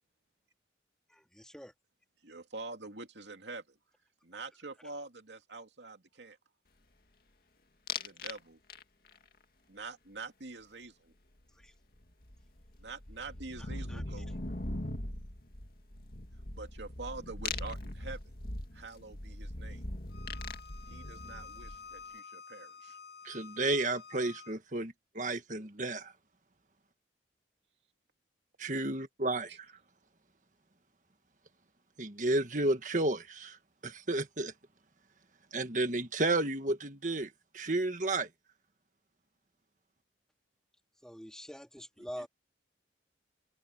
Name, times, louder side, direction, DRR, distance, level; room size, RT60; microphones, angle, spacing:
voice 1, 1.1-1.7 11.6-11.7 13.9-14.0 41.0-42.3, equal, 5° left, 2.3 m, -45 dB
voice 2, 2.2-3.8 4.2-6.4 8.0-8.6 9.7-11.1 12.8-14.3 16.5-18.3 18.7-19.8 20.9-23.0 29.5-29.6 42.0-42.3, right 3 dB, 80° right, 2.6 m, -46 dB
sound 1, 7.9-8.4 8.7-9.2 11.6-11.7 11.9-22.0, left 2 dB, 55° left, 2.3 m, -40 dB
Bowed string instrument, 20.1-24.5, left 5 dB, 70° left, 7.6 m, -50 dB
voice 3, 23.2-26.1 28.6-29.5 32.0-33.6 33.8-34.5 35.5-38.3, right 2 dB, 45° right, 1.7 m, -32 dB
open air
head